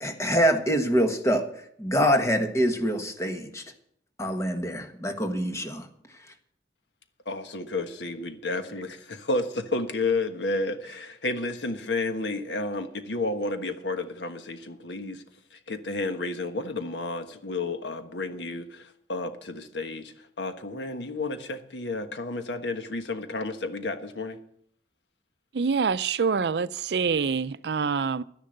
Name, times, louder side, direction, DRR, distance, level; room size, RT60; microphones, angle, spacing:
voice 1, 0.0-1.5 1.8-3.6 4.2-5.9, equal, 15° left, 1.4 m, -25 dB
voice 2, 7.2-8.9 9.3-9.4 9.7-15.2 15.7-24.4, left 2 dB, 90° left, 1.4 m, -31 dB
voice 3, 25.5-28.2, right 5 dB, 70° right, 0.5 m, -26 dB
12.0 x 10.5 x 6.6 m
head